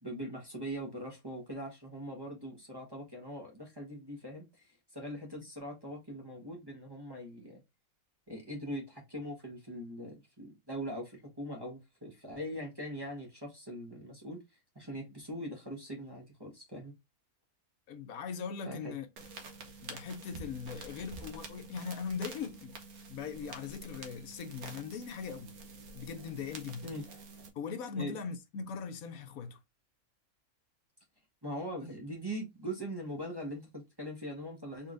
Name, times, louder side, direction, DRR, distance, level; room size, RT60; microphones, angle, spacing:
voice 1, 0.0-7.6 8.3-14.4 14.7-16.9 18.6-18.9 26.8-27.0 27.9-28.2 31.4-34.9, equal, 20° right, 1.1 m, -41 dB
voice 2, 17.9-19.1 19.8-22.7 23.1-25.5 25.9-26.9 27.6-29.6, left 6 dB, 75° left, 1.1 m, -40 dB
sound 1, 19.2-27.5, right 3 dB, 75° right, 1.5 m, -48 dB
4.2 x 3.7 x 2.5 m
omnidirectional pair, 1.5 m